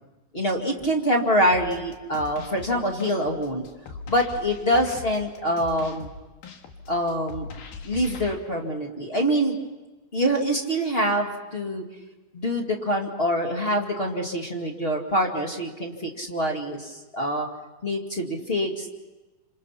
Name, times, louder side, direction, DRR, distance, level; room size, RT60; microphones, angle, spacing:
voice 1, 0.3-3.6 4.1-6.1 6.9-7.4 7.8-9.6 10.1-11.8 12.3-17.5 17.8-18.9, equal, 25° left, 2 dB, 1.4 m, -25 dB
sound 1, 1.5-8.4, left 4 dB, 80° left, 3.6 m, -41 dB
28.5 x 27.0 x 5.8 m, 1.1 s
omnidirectional pair, 4.3 m